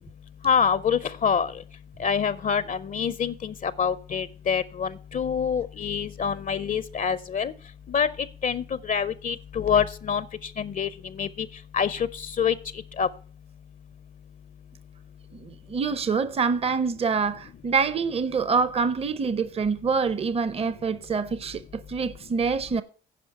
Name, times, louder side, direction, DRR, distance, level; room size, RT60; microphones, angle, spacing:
voice 1, 0.4-1.5 2.0-7.5 7.9-11.5 11.7-12.6 13.0-13.1, left 7 dB, 40° left, 0.5 m, -26 dB
voice 2, 15.3-22.8, right 5 dB, 30° right, 0.7 m, -26 dB
10.0 x 5.2 x 7.6 m
cardioid pair, 90°, 20 cm